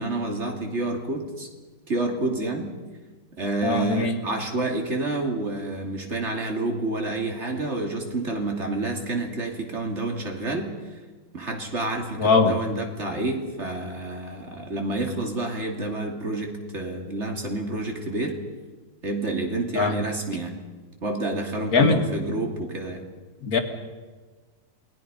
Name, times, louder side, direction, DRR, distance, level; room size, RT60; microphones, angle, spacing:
voice 1, 0.0-1.5 1.9-2.7 3.3-10.7 11.3-18.4 19.0-20.6 21.0-23.0, right 2 dB, 40° right, 3 dB, 3.1 m, -29 dB
voice 2, 3.6-4.2 12.2-12.6 19.7-20.0 21.7-22.0 23.4-23.6, left 4 dB, 55° left, 5 dB, 2.3 m, -21 dB
28.5 x 20.0 x 5.5 m, 1.3 s
omnidirectional pair, 2.0 m